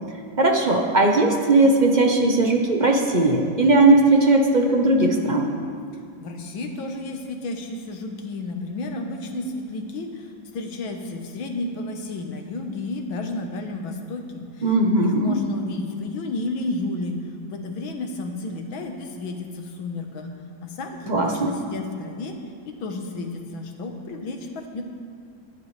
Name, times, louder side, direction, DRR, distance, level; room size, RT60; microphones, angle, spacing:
voice 1, 0.4-5.5 14.6-15.4 21.1-21.5, right 2 dB, 30° right, 2 dB, 1.0 m, -18 dB
voice 2, 6.2-14.7 15.0-17.2 17.5-20.3 20.6-22.3 22.7-24.8, left 2 dB, 85° left, 3 dB, 2.0 m, -32 dB
21.5 x 10.5 x 3.3 m, 2.2 s
omnidirectional pair, 2.1 m